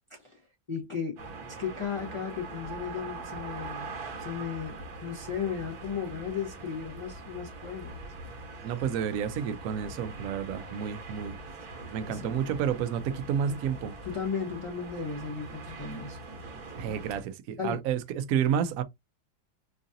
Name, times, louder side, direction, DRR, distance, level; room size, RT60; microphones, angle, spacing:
voice 1, 0.1-8.0 11.8-12.3 13.5-13.6 14.0-16.2 17.6-17.8, left 6 dB, 30° left, 0.6 m, -36 dB
sound 1, 1.2-17.2, right 3 dB, 55° right, 1.4 m, -42 dB
voice 2, 8.6-11.4 11.9-13.9 16.8-18.8, right 8 dB, 85° right, 0.7 m, -30 dB
4.8 x 2.6 x 2.6 m
omnidirectional pair, 2.1 m